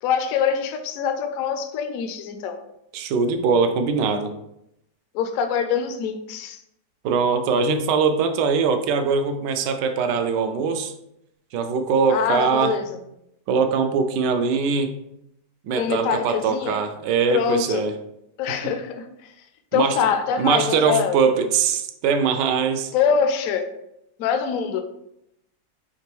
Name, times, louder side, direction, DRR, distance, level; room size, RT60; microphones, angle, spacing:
voice 1, 0.0-2.6 5.1-6.6 12.1-12.9 15.7-16.8 17.3-17.8 18.4-19.1 19.7-21.2 22.9-23.7 24.2-24.8, left 7 dB, 70° left, 7 dB, 0.8 m, -24 dB
voice 2, 2.9-4.3 7.0-10.9 11.5-12.7 13.5-14.9 15.6-17.9 18.5-18.6 19.7-20.0 20.4-22.9, right 5 dB, 85° right, 8 dB, 1.2 m, -22 dB
5.4 x 2.9 x 3.0 m, 0.80 s
omnidirectional pair, 1.8 m